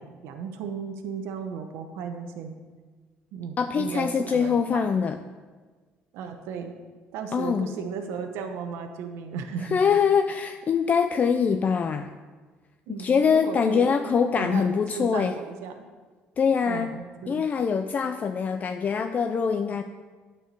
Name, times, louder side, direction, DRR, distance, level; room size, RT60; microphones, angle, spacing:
voice 1, 0.0-2.5 3.3-4.9 6.1-6.7 7.1-9.8 12.9-14.7 14.9-15.8 16.6-17.4, right 6 dB, 85° right, 6 dB, 0.8 m, -35 dB
voice 2, 3.6-5.2 7.3-7.7 9.6-12.1 12.9-15.4 16.4-17.0 17.3-19.8, left 6 dB, 40° left, 7 dB, 0.4 m, -24 dB
9.1 x 4.5 x 6.6 m, 1.4 s
cardioid pair, 100°, 4 cm